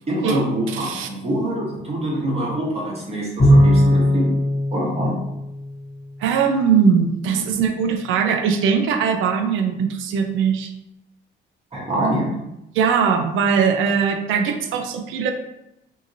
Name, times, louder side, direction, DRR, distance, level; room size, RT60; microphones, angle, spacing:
voice 1, 0.1-4.3 4.7-5.3 7.2-7.4 11.7-12.3, right 1 dB, 30° right, -5 dB, 1.0 m, -25 dB
voice 2, 0.7-1.1 6.2-10.7 12.7-15.3, right 6 dB, 80° right, 6 dB, 0.4 m, -20 dB
Bowed string instrument, 3.4-6.0, equal, 40° left, 1.1 m, -18 dB
2.8 x 2.6 x 2.6 m, 0.87 s
cardioid pair, 90°, 20 cm